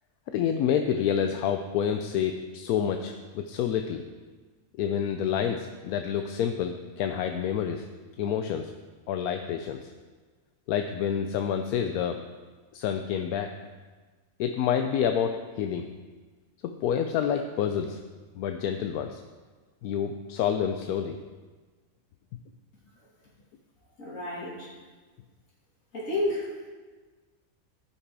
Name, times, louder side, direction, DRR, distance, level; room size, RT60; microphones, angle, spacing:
voice 1, 0.3-4.0 4.8-7.9 8.2-8.7 9.1-9.9 10.7-12.2 12.7-13.5 14.4-15.9 16.6-18.0 18.3-19.2 19.8-21.2, left 8 dB, 85° left, 6 dB, 1.1 m, -28 dB
voice 2, 24.0-24.7 25.9-26.7, left 1 dB, 65° left, -6 dB, 3.0 m, -31 dB
13.0 x 5.9 x 4.7 m, 1.4 s
omnidirectional pair, 1.5 m